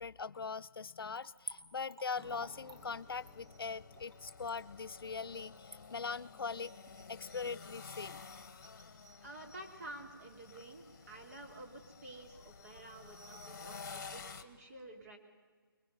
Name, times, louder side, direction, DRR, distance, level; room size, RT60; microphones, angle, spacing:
voice 1, 0.0-6.7 7.1-8.2, left 5 dB, 70° left, 14 dB, 0.5 m, -41 dB
Splash splatter / Trickle dribble, 1.1-7.6 7.9-8.0, right 3 dB, 75° right, 2.5 m, -52 dB
Guitar, 2.1-8.0, equal, 15° right, 1.6 m, -64 dB
sound 1, 2.2-14.4, left 5 dB, 45° left, 1.6 m, -52 dB
voice 2, 9.2-15.2, right 1 dB, 40° right, 1 dB, 3.1 m, -51 dB
25.0 x 21.5 x 5.5 m, 1.5 s
hypercardioid pair, 170°, 12 cm